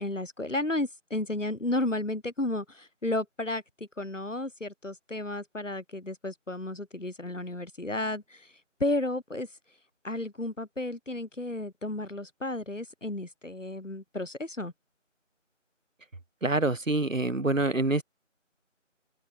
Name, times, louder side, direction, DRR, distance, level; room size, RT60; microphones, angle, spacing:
voice 1, 0.0-3.6 4.0-8.5 8.8-9.5 10.0-14.7, left 2 dB, 75° left, 5.4 m, -33 dB
voice 2, 16.4-18.0, right 2 dB, 80° right, 2.2 m, -26 dB
figure-of-eight pair, 170°, 38 cm